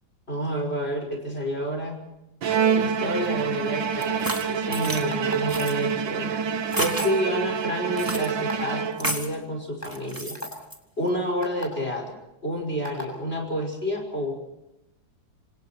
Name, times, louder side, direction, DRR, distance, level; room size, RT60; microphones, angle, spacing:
voice 1, 0.3-2.0 2.7-6.3 6.8-10.4 11.0-12.1 12.4-14.3, equal, 30° left, 2 dB, 5.9 m, -29 dB
Bowed string instrument, 2.4-9.4, right 6 dB, 85° right, 2.1 m, -27 dB
sound 1, 4.0-5.0 5.5-5.7 6.7-7.1 8.0-8.3 9.0-9.3 9.8-10.8, right 1 dB, 10° right, 2.6 m, -31 dB
sound 2, 5.1-5.6 6.7-7.2 8.3-8.5 9.3-9.4 9.8-9.9 10.3-10.5 11.4-11.7 12.8-13.1, left 1 dB, 10° left, 7.5 m, -35 dB
27.5 x 27.0 x 4.5 m, 0.92 s
omnidirectional pair, 2.0 m